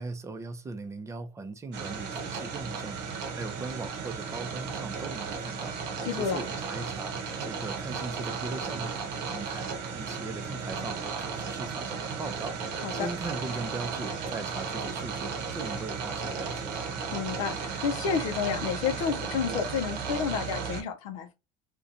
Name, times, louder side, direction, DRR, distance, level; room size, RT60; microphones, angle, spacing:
voice 1, 0.0-3.0 3.3-5.8 6.1-7.2 7.4-12.6 12.9-16.9, right 3 dB, 15° right, 0.5 m, -39 dB
sound 1, 1.7-20.8, right 5 dB, 70° right, 0.8 m, -35 dB
voice 2, 6.0-6.4 12.8-13.1 17.1-21.3, left 7 dB, 85° left, 0.4 m, -30 dB
2.6 x 2.1 x 2.5 m
supercardioid pair, 110°, 18 cm